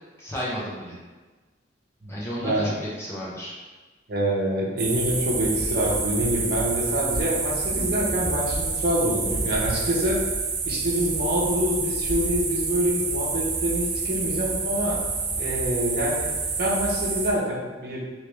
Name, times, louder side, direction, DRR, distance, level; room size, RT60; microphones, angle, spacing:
voice 1, 0.2-1.0 2.1-3.5, equal, 15° left, -7 dB, 0.7 m, -32 dB
voice 2, 2.4-2.7 4.1-10.2 10.6-15.0 15.4-16.3 16.6-18.0, equal, 55° right, -4 dB, 0.8 m, -26 dB
sound 1, 4.8-17.3, right 4 dB, 35° right, 0.4 m, -28 dB
3.2 x 3.0 x 3.1 m, 1.3 s
head